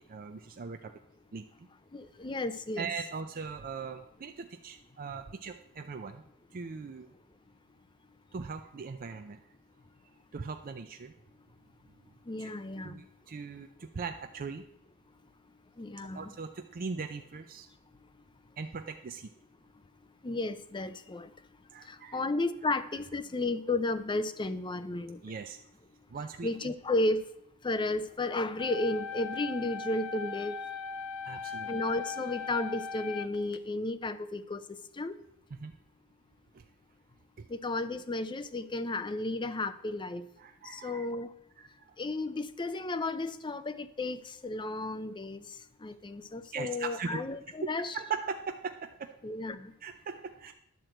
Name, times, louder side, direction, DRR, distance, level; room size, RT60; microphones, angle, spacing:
voice 1, 0.1-0.8 1.3-1.4 2.8-6.2 6.5-7.1 8.3-9.4 10.3-11.1 12.4-12.5 12.8-14.6 16.1-17.7 18.6-19.3 21.7-22.2 25.2-25.6 26.1-26.5 31.2-31.7 35.6-35.7 40.4-41.1 46.5-47.2 47.9-49.1 49.8-50.5, right 5 dB, 40° right, 6 dB, 0.5 m, -39 dB
voice 2, 1.9-2.9 12.3-13.0 15.8-16.3 20.2-21.3 21.9-25.2 26.4-27.2 27.6-30.5 31.7-34.6 35.0-35.1 37.5-40.2 40.7-41.3 42.0-45.4 45.8-48.0 49.2-49.7, left 2 dB, 20° left, 11 dB, 0.5 m, -33 dB
sound 1, 28.6-33.6, left 5 dB, 75° left, 0.8 m, -39 dB
11.0 x 4.5 x 7.7 m, 0.76 s
head